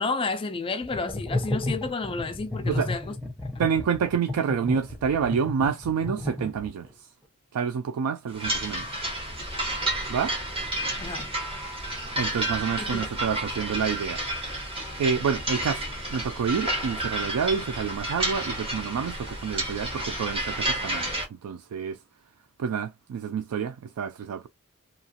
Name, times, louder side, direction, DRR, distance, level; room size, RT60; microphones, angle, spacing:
voice 1, 0.0-3.0 11.0-11.3 12.8-13.0, left 3 dB, 25° left, 0.3 m, -31 dB
sound 1, 0.8-6.9, left 1 dB, ahead, 0.7 m, -32 dB
voice 2, 3.6-7.1 7.5-8.9 10.1-10.4 12.2-14.3 15.0-22.0 22.6-24.5, right 6 dB, 80° right, 0.3 m, -28 dB
sound 2, 8.3-21.3, right 1 dB, 25° right, 1.1 m, -31 dB
2.8 x 2.4 x 2.8 m
head